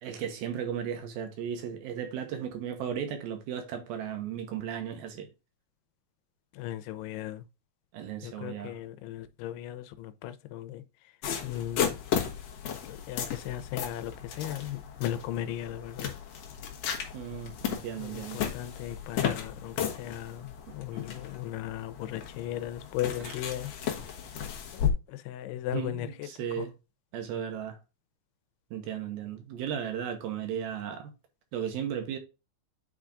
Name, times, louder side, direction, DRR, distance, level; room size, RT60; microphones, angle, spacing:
voice 1, 0.0-5.3 7.9-8.7 17.1-18.4 20.7-20.8 23.2-23.4 25.7-26.7 27.1-27.8 28.7-31.1 31.5-32.2, right 8 dB, 75° right, 2.8 m, -35 dB
voice 2, 6.6-7.4 8.2-10.8 11.4-12.0 12.8-16.1 18.0-23.7 24.7-26.1 26.6-26.7, left 12 dB, 90° left, 2.8 m, -37 dB
sound 1, 11.2-24.9, left 8 dB, 70° left, 1.6 m, -35 dB
9.0 x 4.6 x 2.5 m
omnidirectional pair, 4.6 m